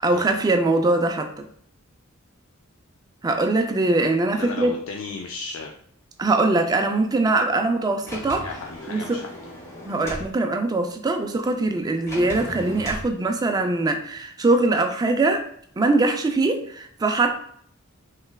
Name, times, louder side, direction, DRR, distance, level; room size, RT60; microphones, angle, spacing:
voice 1, 0.0-1.4 3.2-4.7 6.2-8.5 8.9-9.2 9.9-15.4 15.8-17.4, right 2 dB, 20° right, 5 dB, 0.3 m, -22 dB
voice 2, 4.4-5.7 8.4-9.3, left 4 dB, 70° left, 1 dB, 0.4 m, -35 dB
Sliding door, 8.0-10.3 12.1-13.1, equal, 15° left, 0.8 m, -36 dB
3.4 x 3.1 x 2.2 m, 0.64 s
head